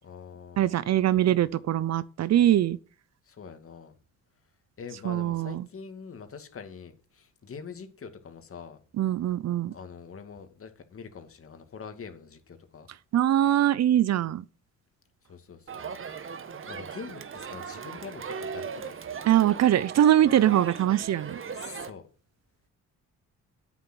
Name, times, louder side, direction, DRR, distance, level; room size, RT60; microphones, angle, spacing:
voice 1, 0.0-1.6 3.2-3.9 4.8-8.8 9.7-12.9 15.2-16.3 16.6-18.9 21.5-22.1, left 6 dB, 45° left, 2.5 m, -44 dB
voice 2, 0.6-2.8 5.0-5.7 9.0-9.7 13.1-14.4 19.3-21.4, right 12 dB, 60° right, 0.7 m, -22 dB
Crowd, 15.7-21.9, right 6 dB, 45° right, 1.4 m, -38 dB
10.0 x 9.2 x 6.4 m
cardioid pair, 90°, 30 cm